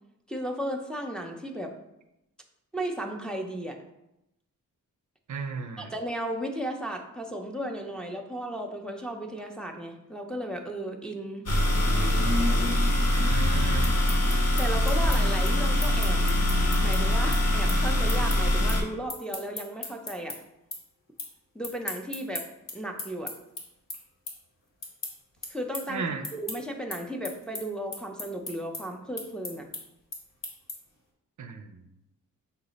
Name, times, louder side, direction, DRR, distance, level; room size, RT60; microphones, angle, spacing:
voice 1, 0.3-1.7 2.7-3.8 5.8-11.5 14.6-16.2 16.8-20.4 21.5-22.4 22.7-23.3 25.5-26.1 26.3-29.7, right 1 dB, ahead, 1 dB, 0.5 m, -35 dB
voice 2, 5.3-5.9 13.1-14.0 25.9-26.2 31.4-31.8, right 4 dB, 60° right, 6 dB, 0.5 m, -35 dB
sound 1, 11.5-18.8, left 1 dB, 45° left, 0.9 m, -23 dB
sound 2, 13.8-20.4 20.7-21.3 21.6-31.0, left 2 dB, 65° left, 1.2 m, -38 dB
5.5 x 2.0 x 3.9 m, 0.87 s
cardioid pair, 55°, 35 cm